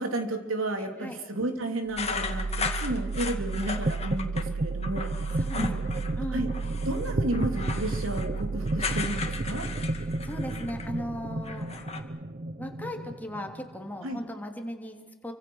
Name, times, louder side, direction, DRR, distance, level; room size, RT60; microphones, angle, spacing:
voice 1, 0.0-5.8 6.3-6.5 6.8-9.7 14.0-14.2, right 1 dB, 80° right, 4 dB, 3.2 m, -32 dB
sound 1, 2.0-4.4 4.8-6.2 6.5-11.0 11.3-12.0, left 5 dB, 30° left, 2.2 m, -36 dB
sound 2, 2.0-13.9, right 3 dB, 40° right, 0.8 m, -32 dB
voice 2, 5.3-6.5 9.9-11.8 12.6-15.3, equal, 10° left, 3 dB, 3.0 m, -37 dB
28.0 x 25.5 x 6.4 m, 1.2 s
head